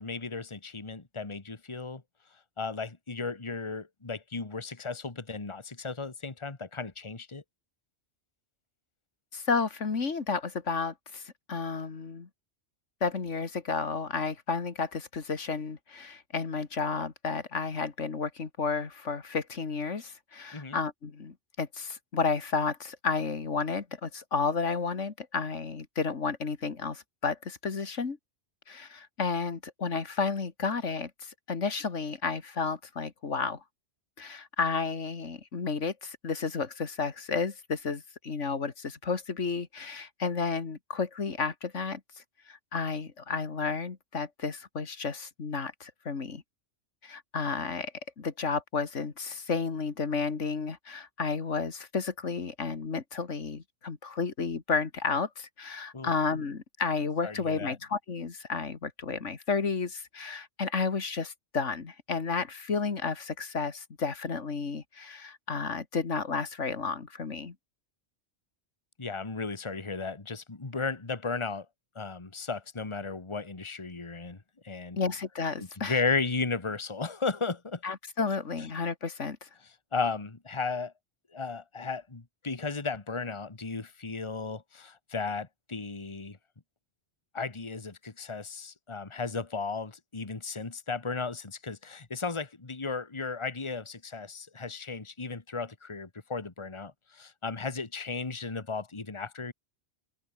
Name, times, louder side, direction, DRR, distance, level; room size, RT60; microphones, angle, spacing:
voice 1, 0.0-2.0 2.6-7.4 20.5-20.8 55.9-56.1 57.2-57.8 69.0-71.7 71.9-74.4 74.6-75.0 75.9-77.8 79.9-80.9 81.3-86.4 87.3-99.5, left 4 dB, 25° left, 1.6 m, -35 dB
voice 2, 9.3-12.3 13.0-28.2 28.7-33.6 34.2-42.0 42.5-46.4 47.0-67.5 75.0-76.0 77.8-79.5, left 5 dB, 85° left, 2.3 m, -32 dB
open air
omnidirectional pair, 1.2 m